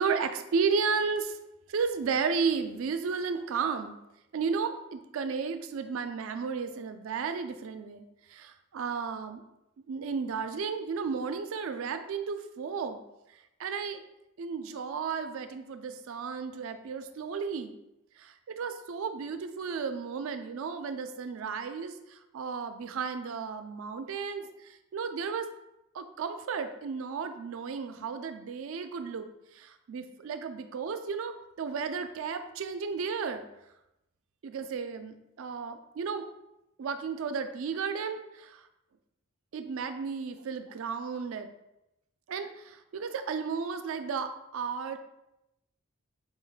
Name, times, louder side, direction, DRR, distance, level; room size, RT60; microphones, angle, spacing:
voice 1, 0.0-1.3 1.7-4.0 4.3-8.0 8.3-9.4 9.9-13.0 13.6-14.0 14.4-17.7 18.2-24.5 24.9-25.5 25.9-29.3 29.5-33.4 34.4-36.2 36.8-38.6 39.5-41.5 42.3-45.0, right 5 dB, 65° right, 9 dB, 0.3 m, -33 dB
4.3 x 2.1 x 3.9 m, 0.88 s
head